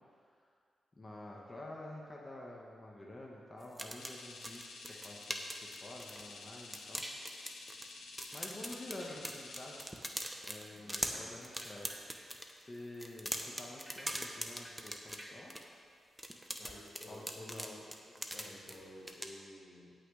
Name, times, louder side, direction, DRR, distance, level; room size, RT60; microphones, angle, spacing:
voice 1, 1.0-7.1 8.3-9.8 10.4-15.5 17.1-17.7 18.1-18.5, left 1 dB, 30° left, -2 dB, 1.6 m, -49 dB
sound 1, 3.6-6.4 6.7-7.9 8.2-12.5 12.9-15.6 16.2-18.8 19.1-19.3, equal, 10° right, 1.0 m, -41 dB
sound 2, 4.0-9.8, left 3 dB, 80° left, 1.1 m, -51 dB
voice 2, 10.6-11.3 16.6-17.8 18.3-19.9, left 1 dB, 60° left, -5 dB, 2.6 m, -53 dB
17.5 x 6.0 x 3.5 m, 2.2 s
cardioid pair, 55°, 0 cm